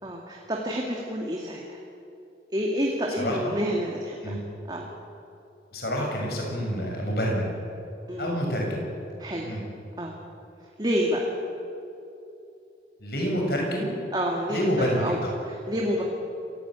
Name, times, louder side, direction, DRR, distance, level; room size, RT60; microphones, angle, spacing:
voice 1, 0.0-1.8 2.5-4.4 4.7-4.8 8.1-8.4 9.2-9.5 10.0-10.1 10.8-11.3 14.1-15.2 15.4-16.0, equal, 25° right, -1 dB, 2.2 m, -28 dB
voice 2, 3.2-3.5 4.2-4.4 5.7-7.5 8.2-8.9 9.4-9.6 13.0-14.0 14.5-15.3, equal, 60° left, 0 dB, 7.0 m, -27 dB
27.5 x 16.5 x 9.0 m, 2.8 s
head